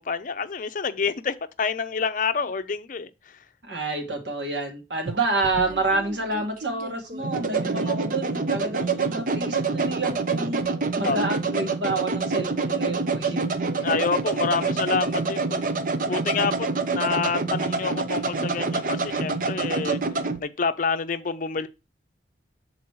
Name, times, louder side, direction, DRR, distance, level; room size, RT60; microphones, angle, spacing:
voice 1, 0.0-3.1 11.0-11.2 13.8-15.6 16.0-16.7 16.9-20.0 20.4-21.7, left 5 dB, 50° left, 0.5 m, -27 dB
voice 2, 3.6-10.6 11.0-13.7, right 2 dB, 85° right, 2.2 m, -28 dB
sound 1, 5.1-20.4, right 4 dB, 50° right, 0.7 m, -27 dB
7.4 x 4.0 x 4.6 m
head